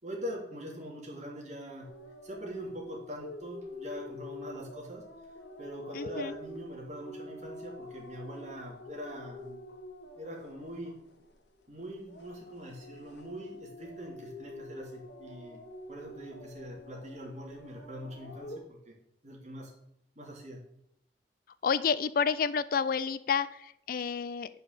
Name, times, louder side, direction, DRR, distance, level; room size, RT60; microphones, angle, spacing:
voice 1, 0.0-1.9 2.2-5.0 5.6-9.6 10.2-11.0 11.7-15.6 15.9-18.9 19.2-19.7 20.2-20.6 23.0-23.1, equal, 40° right, -1 dB, 2.6 m, -43 dB
sound 1, 1.8-11.6 12.0-18.6, left 1 dB, 85° left, 1.4 m, -46 dB
voice 2, 5.9-6.3 21.6-24.5, left 6 dB, 55° left, 16 dB, 0.4 m, -30 dB
9.6 x 5.4 x 6.5 m, 0.76 s
head